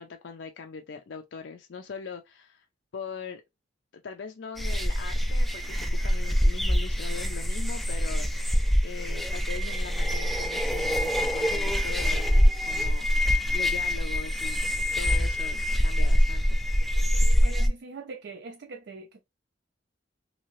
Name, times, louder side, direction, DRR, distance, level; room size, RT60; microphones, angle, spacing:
voice 1, 0.0-2.7 2.9-3.4 3.9-14.6 15.0-16.6, left 5 dB, 70° left, 0.4 m, -41 dB
sound 1, 4.6-17.7, equal, ahead, 0.3 m, -25 dB
voice 2, 17.4-19.1, right 4 dB, 65° right, 0.4 m, -41 dB
2.7 x 2.7 x 3.0 m
head